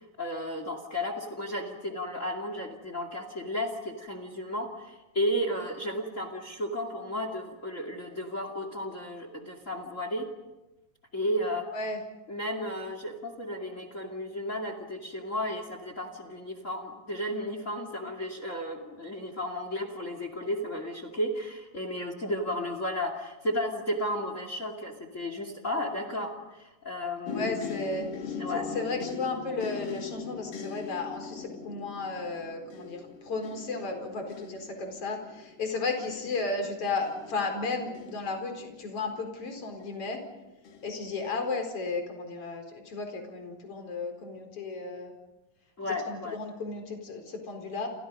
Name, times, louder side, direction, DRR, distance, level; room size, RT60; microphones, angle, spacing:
voice 1, 0.0-10.3 11.1-11.7 12.3-27.7 28.4-28.7 45.8-46.4, left 1 dB, 25° left, 7 dB, 2.2 m, -33 dB
sound 1, 27.2-39.1 39.8-40.3 40.6-40.9, left 5 dB, 70° left, 3.9 m, -41 dB
voice 2, 27.3-40.2 40.8-45.1 46.1-47.9, left 3 dB, 40° left, 4 dB, 5.2 m, -34 dB
29.5 x 28.5 x 5.4 m, 1.0 s
omnidirectional pair, 4.1 m